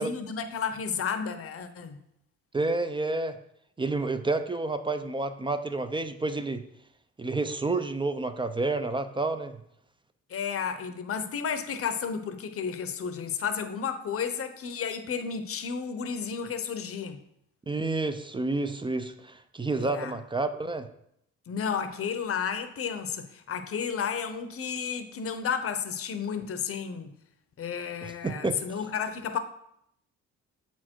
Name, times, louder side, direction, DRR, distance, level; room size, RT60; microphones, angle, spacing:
voice 1, 0.0-2.0 10.3-17.2 19.8-20.1 21.5-27.1 27.6-29.4, left 6 dB, 50° left, 0.8 m, -32 dB
voice 2, 2.5-3.4 3.8-6.6 7.2-9.6 17.7-20.9 28.0-28.6, right 3 dB, 15° right, 0.5 m, -29 dB
7.0 x 4.4 x 4.5 m
cardioid pair, 90°, 30 cm